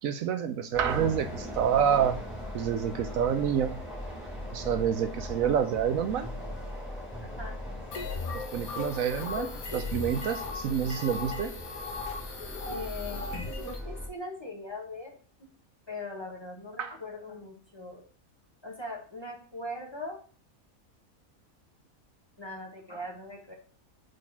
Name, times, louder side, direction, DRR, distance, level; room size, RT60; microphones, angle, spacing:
voice 1, 0.0-2.2 2.5-3.7 4.5-6.3 8.3-11.5 16.8-16.9, right 8 dB, 75° right, 8 dB, 1.0 m, -28 dB
sound 1, 0.7-14.1, left 1 dB, ahead, 2.2 m, -39 dB
sound 2, 7.9-13.8, left 4 dB, 80° left, 1.6 m, -38 dB
voice 2, 12.6-15.5 15.9-18.0 18.6-20.2 22.4-23.5, left 2 dB, 20° left, -1 dB, 1.5 m, -40 dB
4.9 x 4.2 x 5.6 m, 0.41 s
omnidirectional pair, 1.5 m